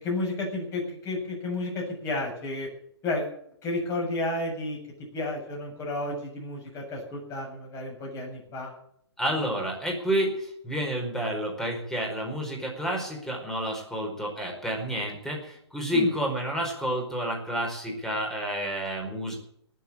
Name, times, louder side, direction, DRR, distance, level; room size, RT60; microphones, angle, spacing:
voice 1, 0.0-2.7 3.0-4.8 5.1-8.7 15.9-16.1, left 2 dB, 20° left, 0 dB, 7.9 m, -32 dB
voice 2, 9.2-19.3, equal, 5° left, 1 dB, 4.7 m, -29 dB
19.0 x 7.7 x 9.8 m, 0.68 s
figure-of-eight pair, 125°, 14 cm